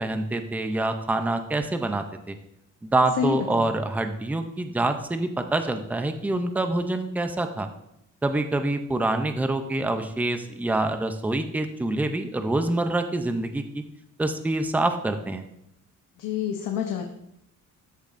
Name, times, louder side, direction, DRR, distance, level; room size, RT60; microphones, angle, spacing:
voice 1, 0.0-2.4 2.8-7.7 8.2-13.8 14.2-15.4, right 2 dB, 5° right, 7 dB, 0.4 m, -26 dB
voice 2, 3.2-3.7 16.2-17.0, left 8 dB, 85° left, 3 dB, 0.9 m, -28 dB
13.0 x 6.9 x 2.5 m, 0.79 s
wide cardioid pair, 180°, 32 cm